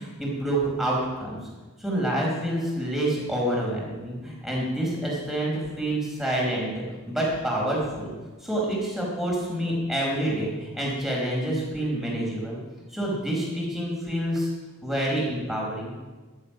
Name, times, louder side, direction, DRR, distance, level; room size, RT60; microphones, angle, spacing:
voice 1, 0.0-1.4 1.8-8.1 8.4-12.6 12.9-14.5 14.8-15.9, right 1 dB, ahead, -4 dB, 4.8 m, -27 dB
14.5 x 12.0 x 5.9 m, 1.3 s
head